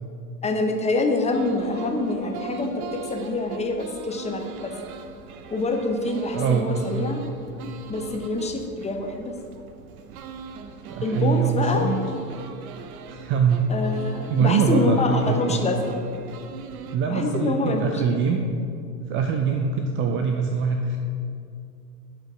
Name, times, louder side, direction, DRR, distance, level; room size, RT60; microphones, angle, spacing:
voice 1, 0.4-4.7 5.5-7.2 7.9-9.3 11.0-11.9 13.7-15.9 17.1-17.9, left 2 dB, 15° left, 3 dB, 0.9 m, -26 dB
sound 1, 1.3-17.0, right 6 dB, 60° right, 0.8 m, -40 dB
voice 2, 6.3-7.1 10.9-12.0 13.1-13.6 14.3-15.8 16.9-18.4 19.0-21.0, right 5 dB, 25° right, 4 dB, 0.5 m, -23 dB
10.5 x 5.4 x 4.9 m, 2.5 s
hypercardioid pair, 90°, 49 cm